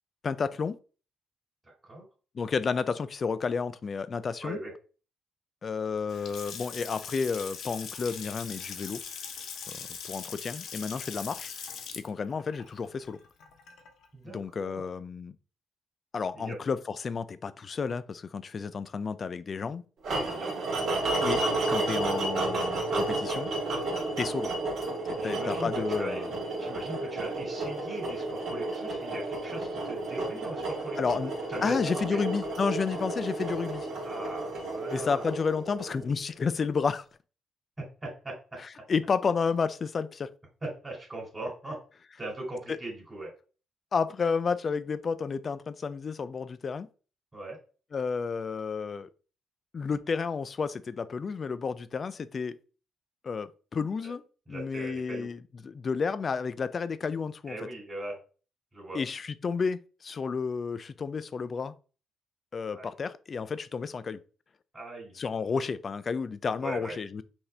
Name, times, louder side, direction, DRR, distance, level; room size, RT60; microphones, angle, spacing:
voice 1, 0.2-0.8 2.3-4.6 5.6-9.0 9.7-11.5 12.0-13.2 14.3-15.3 16.1-19.8 21.2-23.5 24.2-24.5 25.2-26.3 31.0-31.3 31.6-33.9 34.9-37.0 38.9-40.3 42.7-42.8 43.9-46.9 47.9-49.1 49.7-52.5 53.2-54.2 54.5-55.4 55.6-57.6 58.9-61.7 62.5-64.2 65.2-67.2, left 5 dB, 40° left, 0.4 m, -31 dB
voice 2, 1.6-2.1 4.4-4.7 14.1-14.8 16.3-16.6 20.1-20.5 24.1-24.2 25.2-26.2 26.6-31.0 31.5-32.2 34.0-35.3 37.8-38.4 40.6-41.8 42.2-43.3 47.3-47.6 54.5-55.3 57.5-58.2 58.7-59.0 62.7-62.9 64.7-65.2 66.6-66.9, right 1 dB, 15° right, 2.3 m, -39 dB
Water tap faucet / Sink (filling or washing) / Splash splatter, 6.0-14.1, left 6 dB, 70° left, 0.8 m, -41 dB
sound 1, 20.0-36.2, right 2 dB, 65° right, 1.9 m, -32 dB
5.6 x 2.7 x 3.3 m
cardioid pair, 90°, 0 cm